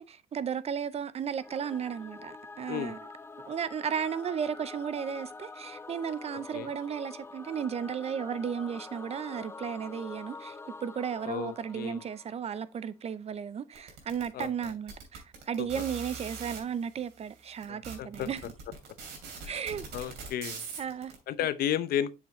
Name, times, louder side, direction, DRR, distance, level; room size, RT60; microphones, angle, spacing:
voice 1, 0.0-3.0 3.5-18.4 19.5-19.9 20.8-21.1, right 7 dB, 40° right, 0.5 m, -34 dB
Singing / Musical instrument, 1.4-12.6, left 3 dB, 15° left, 0.4 m, -46 dB
voice 2, 11.2-12.1 14.3-14.7 15.6-15.8 17.7-18.3 19.4-19.5 19.9-20.6 21.3-22.1, left 10 dB, 65° left, 0.7 m, -33 dB
sound 1, 13.8-16.6 17.3-17.4 17.6-21.1, right 5 dB, 80° right, 2.8 m, -42 dB
7.3 x 5.6 x 3.0 m
cardioid pair, 110°, 17 cm